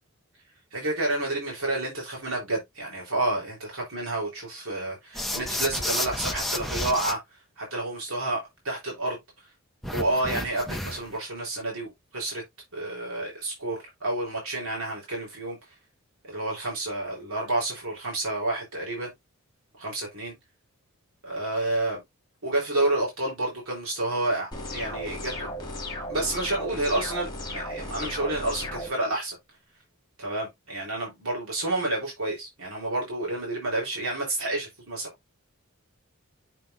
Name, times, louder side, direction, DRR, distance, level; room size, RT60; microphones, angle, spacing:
voice 1, 0.7-7.2 7.6-9.2 9.9-12.4 12.7-15.6 16.3-19.1 19.8-20.4 21.2-22.0 22.4-25.5 26.1-29.4 30.2-35.1, right 2 dB, 80° right, 3.6 m, -29 dB
sound 1, 5.1-7.1 9.8-11.2, left 1 dB, ahead, 0.8 m, -31 dB
sound 2, 24.5-28.9, left 1 dB, 20° left, 2.2 m, -35 dB
7.4 x 6.2 x 2.6 m
head